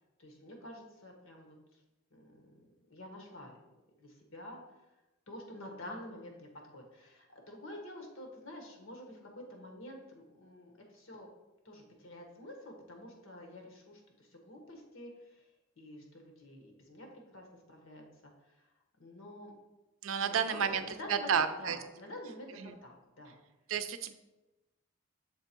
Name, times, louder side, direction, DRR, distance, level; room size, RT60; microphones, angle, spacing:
voice 1, 0.2-1.8 2.1-3.6 4.0-4.6 5.3-11.3 11.6-15.5 15.8-18.7 19.0-19.6 20.2-23.4, left 1 dB, 85° left, 2 dB, 1.3 m, -48 dB
voice 2, 20.0-20.8 21.1-21.8 22.6-22.7 23.7-24.1, right 7 dB, 80° right, 10 dB, 0.5 m, -31 dB
6.6 x 3.5 x 4.4 m, 1.0 s
head